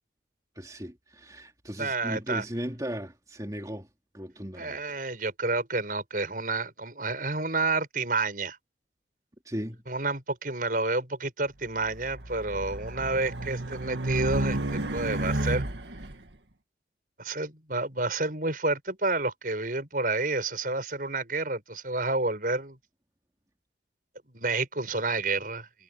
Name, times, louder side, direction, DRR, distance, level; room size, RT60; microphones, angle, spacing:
voice 1, 0.6-3.9 4.1-4.8 9.5-9.8, equal, 20° right, 3.5 m, -36 dB
voice 2, 1.8-2.4 4.6-8.6 9.9-15.7 17.2-22.8 24.3-25.7, right 3 dB, 50° right, 7.0 m, -29 dB
Race car auto racing, 11.8-16.1, right 1 dB, 75° right, 2.1 m, -31 dB
head